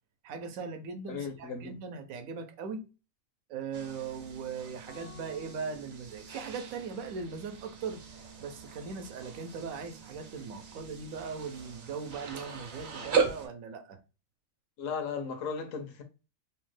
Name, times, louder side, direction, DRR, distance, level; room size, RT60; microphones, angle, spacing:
voice 1, 0.2-2.9 3.5-8.0 8.4-14.0, right 5 dB, 80° right, 1.0 m, -39 dB
voice 2, 1.1-1.8 14.8-16.0, left 5 dB, 80° left, 1.0 m, -36 dB
sound 1, 3.7-13.5, right 5 dB, 60° right, 0.9 m, -38 dB
sound 2, 4.9-7.2, left 4 dB, 55° left, 0.5 m, -57 dB
3.0 x 2.1 x 3.1 m
omnidirectional pair, 1.4 m